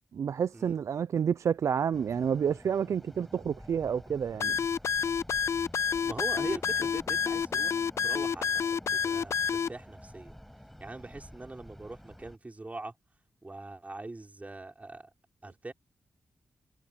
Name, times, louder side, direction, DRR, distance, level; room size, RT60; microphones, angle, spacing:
voice 1, 0.1-4.6, right 7 dB, 70° right, 0.5 m, -29 dB
sound 1, 1.9-12.4, equal, 5° left, 5.3 m, -50 dB
sound 2, 4.4-9.7, left 6 dB, 60° left, 0.4 m, -29 dB
voice 2, 6.0-10.3 10.8-12.9 13.4-15.1 15.4-15.7, right 2 dB, 30° right, 5.1 m, -42 dB
cardioid pair, 55°, 5 cm